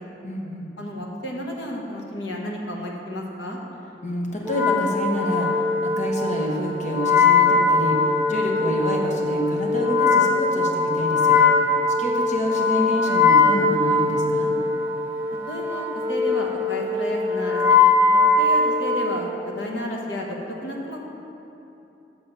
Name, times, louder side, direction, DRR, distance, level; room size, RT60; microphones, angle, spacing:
voice 1, 0.2-0.7 4.0-11.3 12.0-14.5, equal, 45° left, 0 dB, 1.1 m, -28 dB
voice 2, 0.8-3.6 15.5-17.6 18.4-20.4 20.6-21.0, left 1 dB, 75° left, 0 dB, 1.2 m, -32 dB
Wind instrument woodwind instrument, 4.4-19.2, left 4 dB, 15° right, 0.7 m, -21 dB
7.3 x 6.4 x 5.5 m, 2.9 s
head